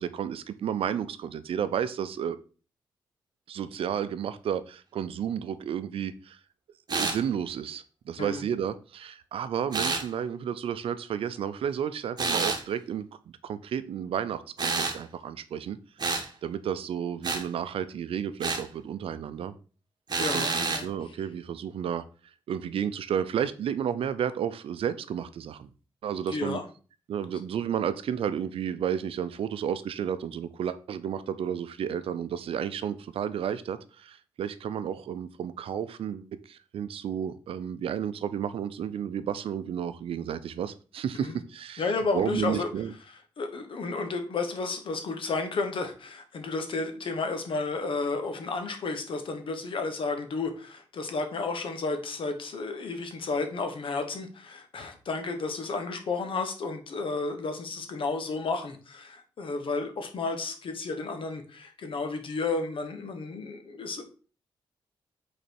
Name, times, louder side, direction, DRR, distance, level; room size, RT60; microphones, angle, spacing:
voice 1, 0.0-2.4 3.5-6.4 6.9-13.0 13.4-16.1 16.4-19.5 20.2-22.0 22.5-25.7 26.0-26.6 27.1-41.8 42.1-42.9, right 8 dB, 75° right, 0.6 m, -32 dB
sound 1, 6.9-7.2 9.7-10.0 12.2-12.6 14.6-15.0 16.0-16.3 17.2-17.4 18.4-18.7 20.1-20.9, right 4 dB, 45° right, 1.3 m, -28 dB
voice 2, 20.2-20.9 26.3-26.6 41.2-41.4 41.8-42.7 43.4-64.0, left 3 dB, 65° left, 1.3 m, -32 dB
5.4 x 4.2 x 4.4 m
cardioid pair, 55°, 10 cm